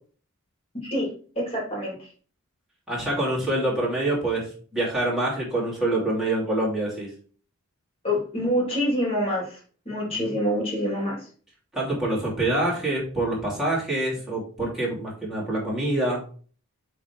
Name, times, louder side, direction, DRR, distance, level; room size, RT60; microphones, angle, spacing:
voice 1, 0.8-2.1 8.0-9.6 9.8-11.3, equal, 25° left, -2 dB, 2.9 m, -26 dB
voice 2, 2.9-7.1 11.7-16.2, right 1 dB, ahead, -7 dB, 3.1 m, -26 dB
7.7 x 3.6 x 4.6 m, 0.42 s
head